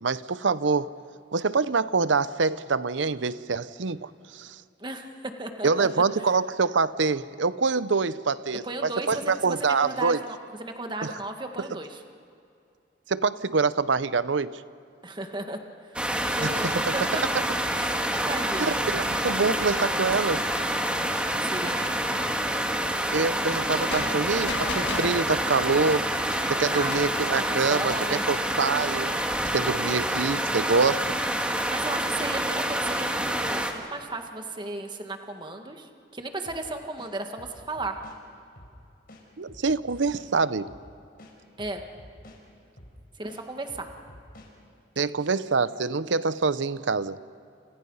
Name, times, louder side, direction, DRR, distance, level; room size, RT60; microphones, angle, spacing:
voice 1, 0.0-0.9 1.3-4.6 5.6-10.2 11.0-11.1 13.1-14.6 16.4-16.6 16.9-17.0 18.1-18.3 18.6-20.4 23.1-26.1 26.5-29.1 29.5-31.0 31.4-31.5 39.4-40.7 45.0-47.2, right 4 dB, 85° right, 15 dB, 0.8 m, -25 dB
voice 2, 4.8-6.0 8.6-12.0 15.0-17.2 17.8-17.9 18.3-18.8 21.4-22.0 26.7-27.0 27.5-28.2 31.6-38.0 41.6-41.8 43.2-43.9, right 2 dB, 25° right, 5 dB, 1.8 m, -35 dB
sound 1, 16.0-33.7, right 1 dB, 5° right, 1.9 m, -27 dB
sound 2, 23.9-27.2, left 3 dB, 70° left, 1.9 m, -36 dB
sound 3, 36.5-36.6 37.0-38.2 38.6-38.7 39.1-40.3 40.7-40.8 41.2-42.4 42.8-43.0 43.3-44.5, left 1 dB, 55° left, 5.2 m, -49 dB
30.0 x 29.0 x 5.6 m, 2.5 s
head